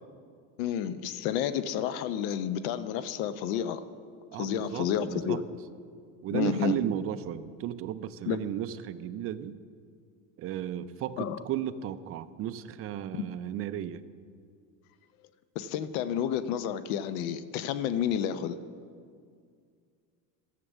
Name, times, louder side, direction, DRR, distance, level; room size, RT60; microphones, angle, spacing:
voice 1, 0.6-3.8 4.4-5.4 6.3-6.8 8.3-8.4 11.2-11.4 15.6-18.6, left 9 dB, 75° left, 13 dB, 0.7 m, -30 dB
voice 2, 4.3-5.4 6.2-9.6 10.4-14.0, right 11 dB, 35° right, 12 dB, 0.4 m, -34 dB
12.5 x 6.7 x 7.2 m, 2.2 s
supercardioid pair, 130°, 41 cm